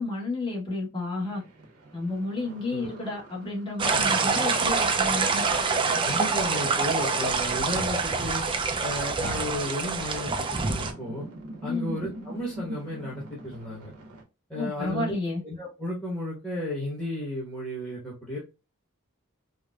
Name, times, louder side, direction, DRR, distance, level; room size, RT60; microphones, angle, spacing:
voice 1, 0.0-1.4 1.9-5.4 11.7-11.9 14.5-15.4, left 2 dB, 25° left, 1.2 m, -31 dB
sound 1, 1.2-5.1 6.2-6.3 8.1-8.2 8.6-14.2, right 1 dB, 85° right, 0.9 m, -44 dB
sound 2, 3.8-10.9, right 4 dB, 25° right, 0.4 m, -26 dB
voice 2, 6.0-8.4 8.8-11.3 11.6-13.9 14.5-15.1 15.4-18.4, left 1 dB, 5° left, 1.1 m, -33 dB
4.6 x 2.1 x 2.3 m
head